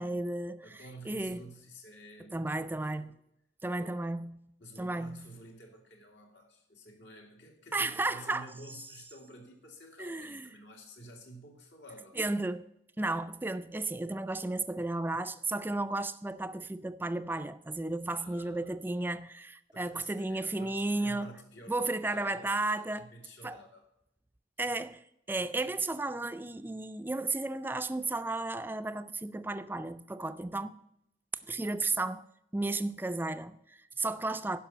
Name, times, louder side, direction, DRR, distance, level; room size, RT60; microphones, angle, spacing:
voice 1, 0.0-1.4 2.3-3.1 3.6-4.4 4.8-5.2 7.7-8.5 10.0-10.5 12.2-12.7 13.0-21.4 21.7-23.1 23.4-23.6 24.6-25.0 25.3-30.7 31.5-32.2 32.5-34.6, right 2 dB, 10° right, 0.3 m, -33 dB
voice 2, 0.6-3.1 3.8-4.0 4.6-12.2 18.1-18.8 19.7-23.9, equal, 80° left, 2.4 m, -51 dB
11.5 x 5.3 x 7.3 m
head